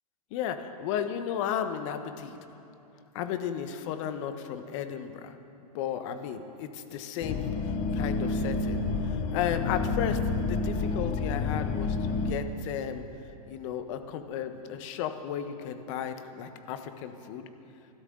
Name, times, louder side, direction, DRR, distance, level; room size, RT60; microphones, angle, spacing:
voice 1, 0.3-2.4 3.1-10.2 10.5-13.0 13.5-17.5, left 9 dB, 50° left, 8 dB, 1.2 m, -34 dB
sound 1, 7.2-12.3, left 4 dB, 35° left, 0.9 m, -29 dB
23.5 x 12.5 x 3.9 m, 2.7 s
hypercardioid pair, 125°, 20 cm